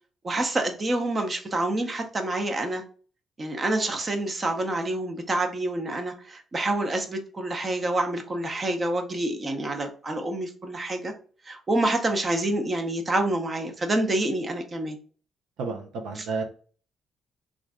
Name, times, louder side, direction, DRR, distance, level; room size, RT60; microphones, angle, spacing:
voice 1, 0.2-2.8 3.4-11.1 11.4-15.0, right 1 dB, 35° right, 0.7 m, -27 dB
voice 2, 15.6-16.4, right 4 dB, 90° right, 0.6 m, -31 dB
3.2 x 2.5 x 3.6 m
cardioid pair, 90°, 0 cm